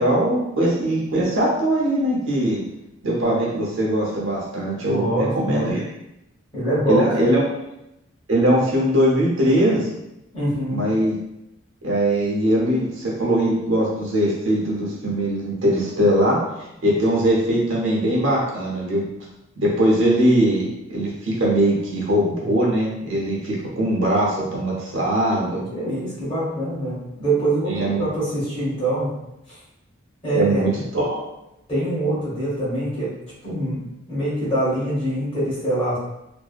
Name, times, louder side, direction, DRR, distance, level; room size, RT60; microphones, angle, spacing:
voice 1, 0.0-2.6 3.0-5.8 6.9-7.4 8.3-9.9 10.7-11.1 11.8-16.4 16.8-19.0 19.6-25.7 27.7-28.1 30.3-31.2, right 1 dB, 70° right, -4 dB, 0.7 m, -21 dB
voice 2, 4.9-5.7 6.5-7.3 10.3-10.8 25.7-29.1 29.5-29.6 30.2-30.7 31.7-33.1 33.4-36.0, right 1 dB, 25° left, -8 dB, 1.0 m, -24 dB
2.7 x 2.1 x 2.4 m, 0.87 s
head